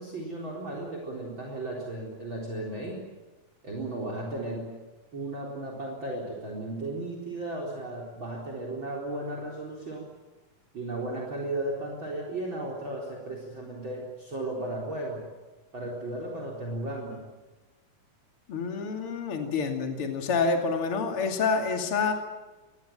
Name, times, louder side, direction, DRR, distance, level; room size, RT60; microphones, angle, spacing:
voice 1, 0.0-3.0 3.6-4.7 5.1-10.1 10.7-15.2 15.7-17.2, right 2 dB, 35° right, 0 dB, 4.7 m, -35 dB
voice 2, 18.5-22.1, left 4 dB, 45° left, 3 dB, 3.3 m, -27 dB
26.5 x 20.5 x 9.0 m, 1.2 s
omnidirectional pair, 3.7 m